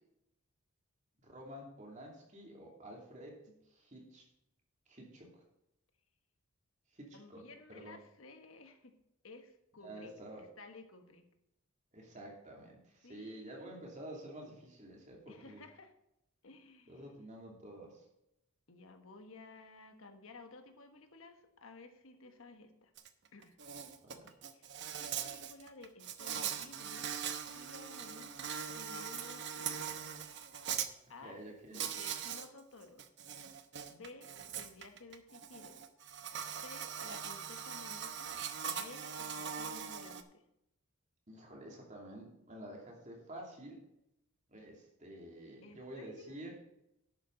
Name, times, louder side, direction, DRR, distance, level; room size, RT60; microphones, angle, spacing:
voice 1, 1.2-3.4 3.7-4.3 4.9-5.4 6.9-8.0 9.8-10.5 11.9-15.6 16.9-18.1 24.0-24.3 31.2-31.9 41.3-43.8 44.5-46.5, right 1 dB, 35° right, 0 dB, 2.7 m, -50 dB
voice 2, 7.1-8.9 9.2-10.1 10.4-11.3 13.0-14.1 15.3-15.9 16.4-17.0 18.7-22.9 23.3-23.6 24.5-27.1 27.4-30.0 31.1-31.4 31.7-33.1 33.9-35.8 36.5-40.4 45.6-46.4, left 3 dB, 70° left, 6 dB, 1.3 m, -55 dB
Insect, 23.0-23.1 23.4-30.9 31.7-32.5 32.8-40.2, right 8 dB, 55° right, 0.8 m, -41 dB
11.5 x 8.7 x 3.9 m, 0.82 s
head